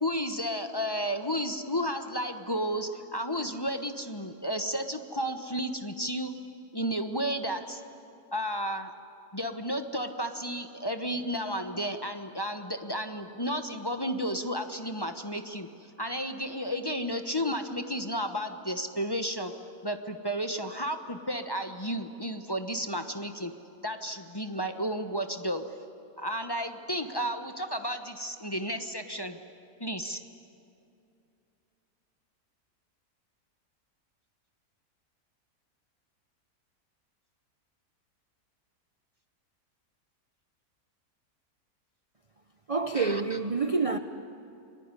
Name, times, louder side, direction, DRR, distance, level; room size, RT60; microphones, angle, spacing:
voice 1, 0.0-6.3 6.7-7.8 8.3-8.9 9.3-15.7 16.0-19.5 19.8-23.5 23.8-25.7 26.2-29.4 29.8-30.2 42.9-43.2, equal, 20° left, 1.0 m, -32 dB
voice 2, 42.7-44.0, right 4 dB, 30° right, 0.6 m, -27 dB
29.0 x 21.0 x 9.8 m
omnidirectional pair, 1.6 m